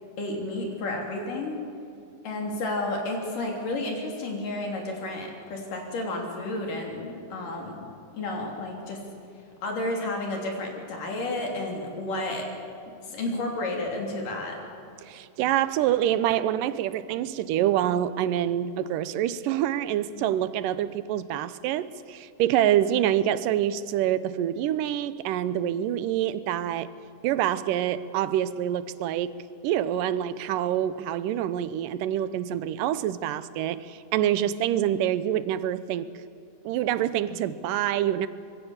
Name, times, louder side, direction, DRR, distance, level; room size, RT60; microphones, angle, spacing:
voice 1, 0.2-1.6 2.2-7.9 8.1-9.0 9.6-12.5 13.1-14.6, left 2 dB, 80° left, 4.8 m, -31 dB
voice 2, 15.0-26.9 27.2-29.3 29.6-36.1 36.6-38.3, right 11 dB, 90° right, 2.4 m, -26 dB
25.5 x 21.5 x 7.3 m
omnidirectional pair, 3.7 m